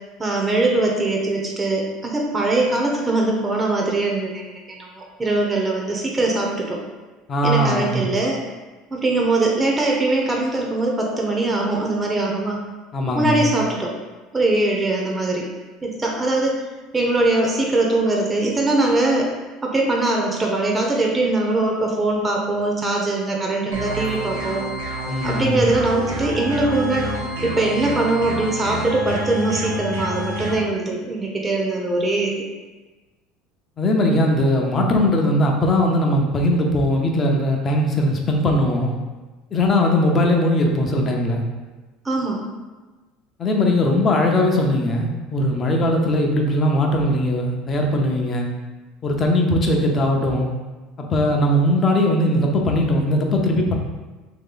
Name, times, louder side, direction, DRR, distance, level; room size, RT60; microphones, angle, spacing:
voice 1, 0.2-6.8 7.4-8.4 8.9-12.6 13.1-13.9 14.3-15.5 15.8-16.6 16.9-19.3 19.6-24.6 25.2-27.2 27.4-32.4 42.0-42.4, right 2 dB, 20° right, -1 dB, 0.7 m, -21 dB
voice 2, 7.3-8.1 12.9-13.5 25.1-25.6 33.8-38.9 39.5-41.4 43.4-48.5 49.0-50.5 51.0-53.7, left 1 dB, 35° left, 1 dB, 0.7 m, -19 dB
sound 1, 23.7-30.6, right 1 dB, 90° right, 0.8 m, -28 dB
3.1 x 2.9 x 3.8 m, 1.2 s
supercardioid pair, 95°, 0 cm